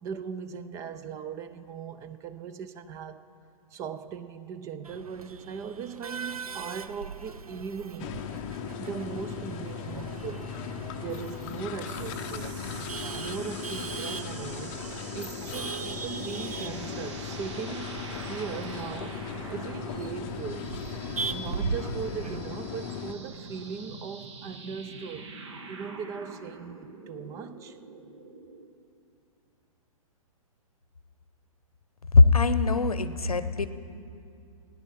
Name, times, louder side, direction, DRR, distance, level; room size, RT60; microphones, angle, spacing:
voice 1, 0.0-3.2 3.7-8.2 8.8-10.5 11.0-12.6 13.1-14.8 15.1-20.7 21.3-25.3 25.7-27.8, right 6 dB, 15° right, 0.3 m, -39 dB
Male speech man speaking / Laughter / Chatter, 4.8-22.4, right 4 dB, 85° right, 0.5 m, -40 dB
sound 1, 8.0-23.1, left 8 dB, 30° left, 0.6 m, -38 dB
sound 2, 11.8-28.7, right 3 dB, 55° right, 1.4 m, -44 dB
voice 2, 32.1-33.7, left 3 dB, 85° left, 0.7 m, -20 dB
17.5 x 9.8 x 4.6 m
figure-of-eight pair, 120°, 18 cm